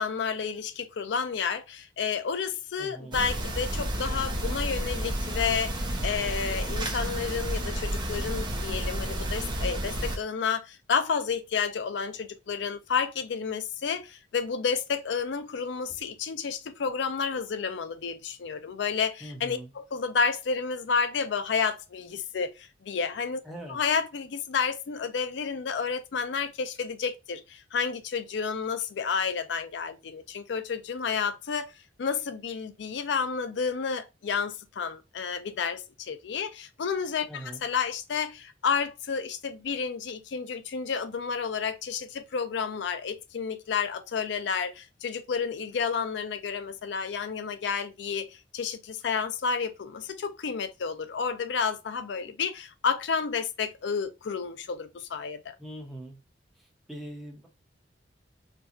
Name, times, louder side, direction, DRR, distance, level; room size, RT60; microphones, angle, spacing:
voice 1, 0.0-23.4 23.7-31.7 32.0-55.5, left 6 dB, 75° left, 0.4 m, -31 dB
voice 2, 2.8-3.2 19.2-19.7 23.4-23.8 37.3-37.6 55.6-56.2 56.9-57.5, right 1 dB, ahead, 1.1 m, -41 dB
sound 1, 3.1-10.2, right 1 dB, 25° right, 0.8 m, -31 dB
4.4 x 2.4 x 2.5 m
head